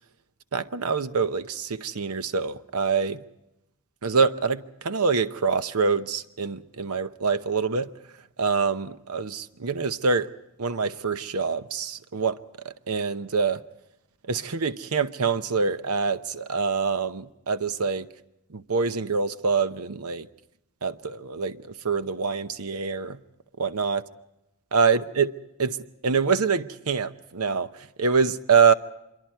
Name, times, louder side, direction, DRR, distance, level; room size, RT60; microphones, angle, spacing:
voice 1, 0.5-3.2 4.0-7.9 8.4-10.3 10.6-12.4 12.6-13.6 14.3-18.1 18.5-20.3 20.8-23.2 23.6-24.0 24.7-25.3 25.6-25.8 26.0-27.7 28.0-28.7, right 5 dB, 85° right, 0.8 m, -25 dB
25.5 x 23.0 x 4.5 m
head